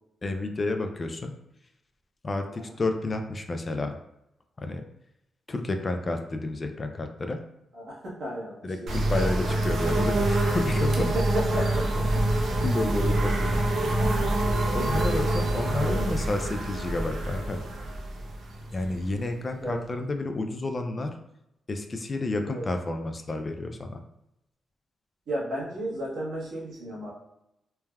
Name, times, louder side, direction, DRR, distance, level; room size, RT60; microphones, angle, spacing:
voice 1, 0.2-1.3 2.2-4.0 4.6-4.8 5.5-7.4 8.6-11.1 12.4-14.2 14.7-17.6 18.7-21.1 21.7-24.0, left 2 dB, 35° left, 5 dB, 0.3 m, -31 dB
voice 2, 7.7-9.4 11.0-12.2 15.8-16.1 19.6-19.8 22.4-22.7 25.3-27.1, right 1 dB, 85° right, -6 dB, 1.0 m, -33 dB
sound 1, 8.9-19.5, right 1 dB, 70° right, 0.5 m, -26 dB
3.2 x 2.1 x 2.2 m, 0.84 s
cardioid pair, 95°, 0 cm